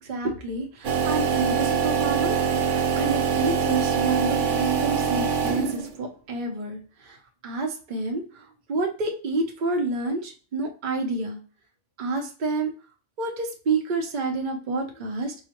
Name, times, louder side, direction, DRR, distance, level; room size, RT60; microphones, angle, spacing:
voice 1, 0.0-7.2 7.4-11.4 12.0-12.7 13.2-15.5, right 3 dB, 50° right, 2 dB, 0.7 m, -29 dB
sound 1, 0.8-6.0, right 6 dB, 85° right, 1.0 m, -24 dB
4.7 x 2.1 x 2.8 m, 0.37 s
omnidirectional pair, 1.2 m